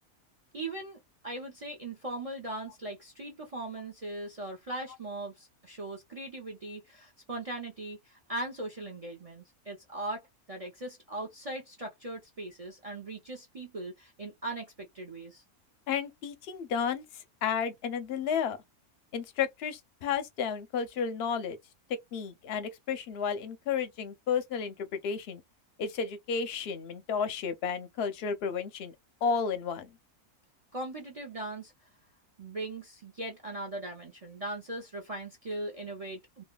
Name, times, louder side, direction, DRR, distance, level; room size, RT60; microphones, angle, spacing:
voice 1, 0.5-15.4 30.7-31.7 32.4-36.4, right 2 dB, 45° right, 0.4 m, -39 dB
voice 2, 15.9-18.6 19.1-21.6 22.1-25.4 25.8-28.9 29.2-29.9, left 6 dB, 60° left, 0.7 m, -32 dB
3.1 x 2.3 x 2.2 m
omnidirectional pair, 1.6 m